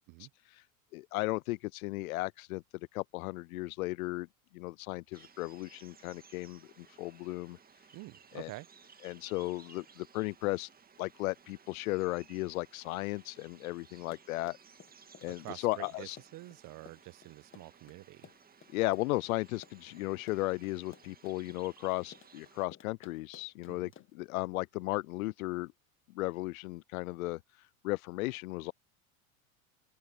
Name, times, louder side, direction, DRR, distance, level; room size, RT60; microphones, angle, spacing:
voice 1, 0.9-2.6 2.9-4.3 4.5-7.6 8.3-8.5 9.0-10.7 11.0-14.6 15.2-16.2 18.7-25.7 26.1-27.4 27.8-28.7, left 20 dB, 75° left, 0.5 m, -35 dB
sound 1, 5.1-22.7, right 6 dB, 20° right, 1.9 m, -59 dB
voice 2, 7.9-8.7 15.3-18.3 23.7-23.9, right 20 dB, 50° right, 1.2 m, -48 dB
Run, 13.9-24.3, left 9 dB, 30° left, 1.6 m, -57 dB
open air
hypercardioid pair, 90°, 43 cm